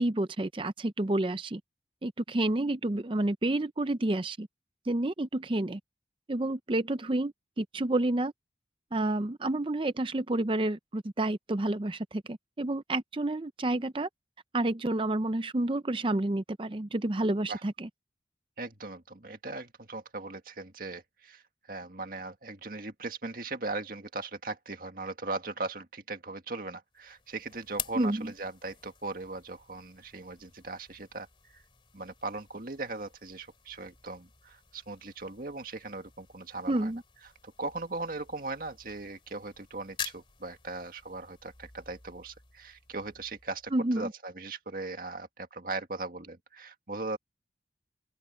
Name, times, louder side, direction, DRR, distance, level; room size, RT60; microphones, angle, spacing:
voice 1, 0.0-1.6 2.0-4.5 4.9-5.8 6.3-8.3 8.9-14.1 14.5-17.9 28.0-28.3 36.7-37.0 43.7-44.1, right 1 dB, 30° right, 0.6 m, -29 dB
voice 2, 18.6-21.4 21.7-31.3 31.5-31.6 31.9-36.9 37.4-47.2, right 3 dB, 50° right, 1.9 m, -39 dB
sound 1, 26.9-43.9, left 7 dB, 30° left, 2.7 m, -48 dB
open air
head